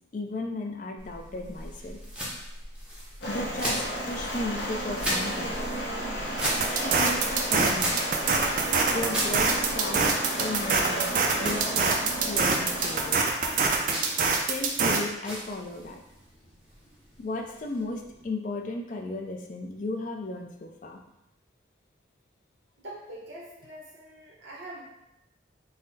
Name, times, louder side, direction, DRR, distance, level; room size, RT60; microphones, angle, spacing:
voice 1, 0.1-2.0 3.3-5.7 6.7-8.0 8.9-10.0 10.4-11.1 11.4-13.3 14.5-16.0 17.2-21.0, left 2 dB, 45° left, 3 dB, 0.4 m, -35 dB
sound 1, 1.0-18.3, equal, 5° right, 0.6 m, -38 dB
sound 2, 3.2-13.1, right 1 dB, 65° left, 0.8 m, -33 dB
sound 3, 6.4-15.0, right 4 dB, 45° right, 0.4 m, -25 dB
voice 2, 22.8-24.8, right 1 dB, 85° right, -6 dB, 0.9 m, -43 dB
3.9 x 2.1 x 3.9 m, 0.88 s
head